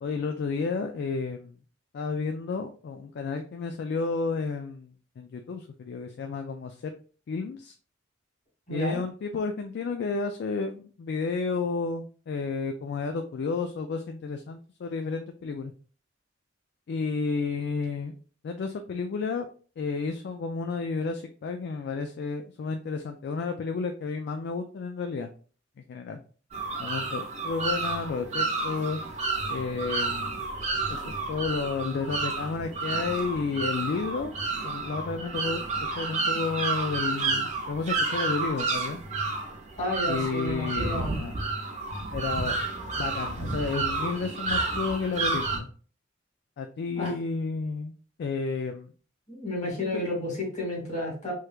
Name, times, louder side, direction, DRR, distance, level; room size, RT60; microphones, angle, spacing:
voice 1, 0.0-1.6 1.9-6.9 7.3-7.7 8.7-15.7 16.9-18.1 18.4-19.5 19.8-25.3 25.9-26.2 26.8-29.0 29.5-30.4 30.9-34.3 34.6-35.6 36.0-39.0 40.1-41.4 42.1-42.5 43.0-45.7 46.6-47.9 48.2-48.9 49.8-50.0, left 4 dB, 60° left, 6 dB, 0.3 m, -31 dB
voice 2, 8.7-9.0 39.8-41.2 46.9-47.1 49.3-51.3, left 1 dB, 40° left, -2 dB, 1.7 m, -31 dB
sound 1, 26.5-45.6, right 3 dB, 40° right, 0.7 m, -30 dB
3.3 x 3.1 x 2.3 m, 0.40 s
head